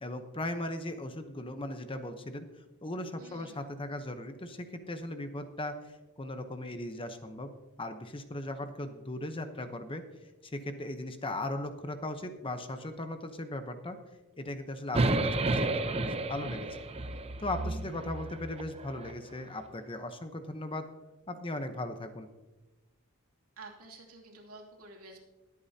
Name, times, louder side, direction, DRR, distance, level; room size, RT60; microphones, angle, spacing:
voice 1, 0.0-2.4 2.8-7.5 7.8-10.0 10.4-14.0 14.4-16.7 17.4-20.9 21.3-22.3, left 1 dB, 25° left, 8 dB, 0.9 m, -38 dB
voice 2, 3.2-3.6 23.6-25.2, right 3 dB, 80° right, -1 dB, 2.7 m, -50 dB
sound 1, 14.9-19.2, right 2 dB, 25° right, 0.6 m, -31 dB
21.5 x 8.6 x 2.8 m, 1.1 s
head